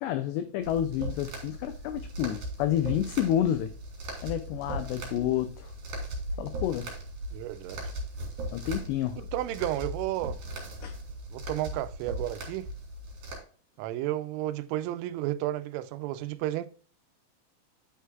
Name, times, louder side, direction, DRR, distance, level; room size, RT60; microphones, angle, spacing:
voice 1, 0.0-3.7 4.2-5.7 6.4-6.9 8.5-9.2 10.8-11.0, left 11 dB, 90° left, 2.4 m, -29 dB
sound 1, 0.6-13.4, right 1 dB, 45° right, 3.4 m, -38 dB
voice 2, 7.3-7.8 9.2-10.4 11.3-12.7 13.8-16.7, right 14 dB, 85° right, 3.1 m, -32 dB
9.4 x 8.3 x 2.3 m
omnidirectional pair, 5.7 m